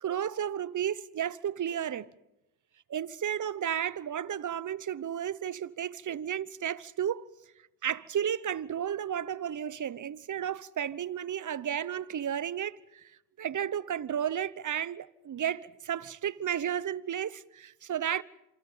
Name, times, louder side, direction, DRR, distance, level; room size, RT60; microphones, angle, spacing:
voice 1, 0.0-2.1 2.9-7.3 7.8-13.1 13.4-18.2, right 9 dB, 40° right, 1.0 m, -33 dB
27.0 x 26.0 x 5.7 m
hypercardioid pair, 50°, 45 cm